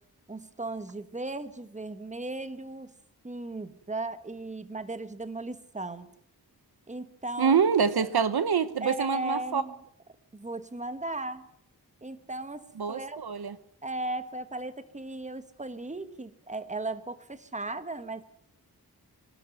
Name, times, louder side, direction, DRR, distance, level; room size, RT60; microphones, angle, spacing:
voice 1, 0.3-2.9 3.2-6.1 6.9-7.6 8.8-9.8 10.3-11.4 12.0-13.2 13.8-18.2, right 2 dB, 20° right, 1.4 m, -36 dB
voice 2, 7.4-9.6 12.8-13.6, right 6 dB, 70° right, 1.0 m, -25 dB
23.5 x 12.5 x 9.3 m
wide cardioid pair, 115°, 39 cm